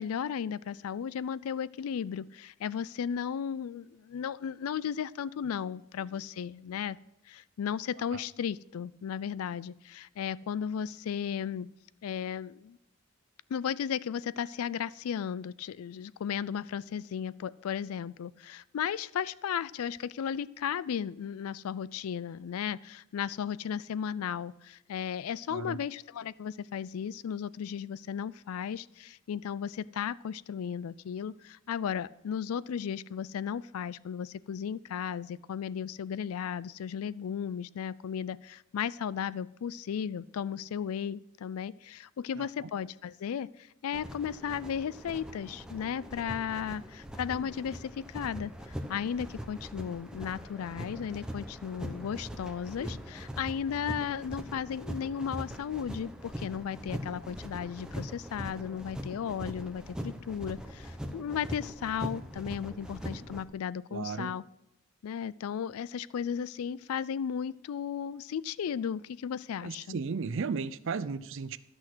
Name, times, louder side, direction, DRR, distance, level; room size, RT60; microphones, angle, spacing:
voice 1, 0.0-7.0 7.3-11.7 12.0-12.8 13.5-64.4 65.0-70.0, left 8 dB, 90° left, 20 dB, 0.4 m, -35 dB
voice 2, 25.5-25.8 42.4-42.7 63.9-64.3 69.6-71.6, right 5 dB, 60° right, 15 dB, 0.5 m, -35 dB
sound 1, 43.9-63.4, equal, 5° right, 0.8 m, -41 dB
13.0 x 6.2 x 6.1 m, 0.83 s
head